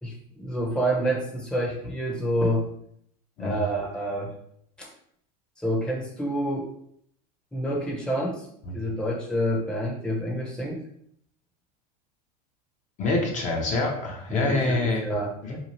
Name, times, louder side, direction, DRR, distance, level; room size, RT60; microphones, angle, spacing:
voice 1, 0.0-2.7 3.4-4.3 4.8-4.9 5.6-6.7 7.5-8.5 8.7-10.8 14.3-15.3, equal, 5° left, -2 dB, 0.7 m, -28 dB
voice 2, 13.0-15.0 15.4-15.6, left 2 dB, 35° left, 0 dB, 0.7 m, -26 dB
2.7 x 2.4 x 3.0 m, 0.68 s
hypercardioid pair, 105°, 21 cm